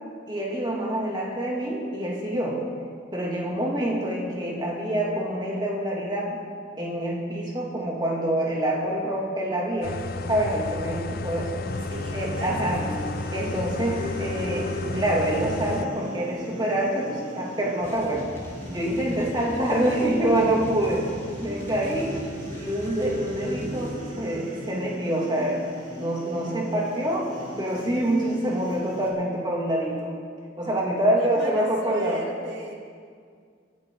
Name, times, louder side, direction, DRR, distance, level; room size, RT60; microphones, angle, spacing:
voice 1, 0.3-2.6 3.1-6.4 6.8-11.5 12.1-12.8 13.3-18.3 18.7-21.1 21.3-22.1 22.5-25.6 26.0-27.2 27.6-30.1 30.6-32.2, right 1 dB, 25° right, -3 dB, 2.6 m, -26 dB
sound 1, 9.8-15.9, left 3 dB, 50° left, 0.4 m, -33 dB
sound 2, 11.6-29.1, equal, 40° right, 3.4 m, -37 dB
voice 2, 11.9-13.1 19.5-19.8 22.1-22.4 26.7-27.7 31.2-32.7, right 2 dB, 75° right, 0 dB, 2.3 m, -39 dB
sound 3, 17.8-23.9, equal, 15° left, 3.2 m, -41 dB
23.5 x 13.5 x 3.9 m, 2.1 s
head